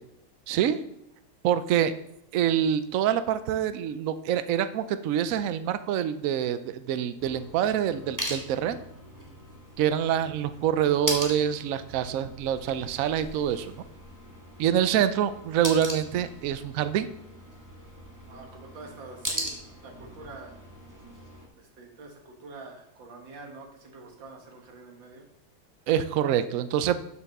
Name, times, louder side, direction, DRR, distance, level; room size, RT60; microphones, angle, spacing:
voice 1, 0.5-0.8 1.4-1.9 2.3-8.8 9.8-13.8 14.6-17.1 25.9-27.0, right 9 dB, 85° right, 11 dB, 0.7 m, -26 dB
sound 1, 7.2-21.5, equal, 10° right, 1.7 m, -39 dB
voice 2, 18.3-19.6 19.8-20.6 21.5-25.3, right 3 dB, 70° right, 1 dB, 2.4 m, -46 dB
7.6 x 6.6 x 6.6 m, 0.81 s
omnidirectional pair, 2.2 m